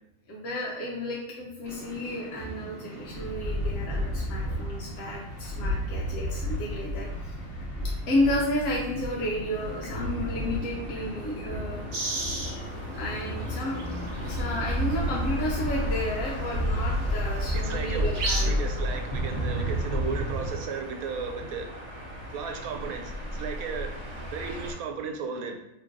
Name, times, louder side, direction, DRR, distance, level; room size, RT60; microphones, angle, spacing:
voice 1, 0.3-7.3 8.1-11.8 12.4-12.6 12.9-13.8 14.2-18.6, left 1 dB, 70° left, -4 dB, 1.0 m, -32 dB
sound 1, 1.6-20.5, equal, 45° left, 1.0 m, -32 dB
sound 2, 9.5-24.7, left 1 dB, 70° right, 1.2 m, -39 dB
sound 3, 11.9-12.5 13.5-13.6 13.7-14.6 16.0-16.1 17.9-18.4, right 2 dB, 50° right, 0.9 m, -31 dB
voice 2, 17.5-18.1 18.4-21.7 22.3-24.0 24.3-25.6, right 5 dB, 90° right, 4 dB, 1.0 m, -34 dB
2.9 x 2.6 x 3.7 m, 0.89 s
omnidirectional pair, 1.5 m